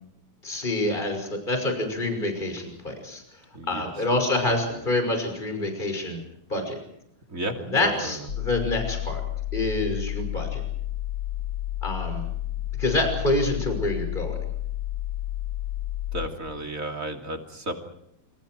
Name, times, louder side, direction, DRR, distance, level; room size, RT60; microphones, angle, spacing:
voice 1, 0.4-3.2 3.7-6.2 6.5-6.8 7.6-9.2 9.5-10.6 11.8-12.2 12.8-14.4, left 2 dB, 15° left, 4 dB, 6.0 m, -27 dB
voice 2, 3.5-4.2 4.7-4.9 7.3-8.3 16.1-17.7, right 1 dB, 25° right, 3 dB, 2.9 m, -34 dB
sound 1, 8.3-16.3, left 13 dB, 45° left, 1.8 m, -31 dB
28.5 x 28.0 x 4.6 m, 0.75 s
omnidirectional pair, 3.5 m